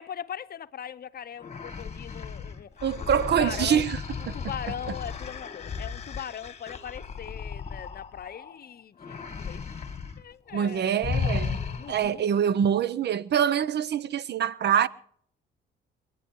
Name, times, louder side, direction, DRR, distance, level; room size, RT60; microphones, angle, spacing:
voice 1, 0.0-3.8 4.2-9.6 10.2-11.0 11.8-12.3, left 9 dB, 50° left, 0.8 m, -40 dB
sound 1, 1.4-8.6 9.0-10.2 10.5-10.7 11.0-12.1, left 5 dB, 35° left, 1.7 m, -35 dB
voice 2, 2.8-4.0 4.3-4.4 10.5-11.6 11.9-14.9, right 8 dB, 60° right, 0.7 m, -25 dB
29.0 x 9.7 x 4.6 m
cardioid pair, 90°, 20 cm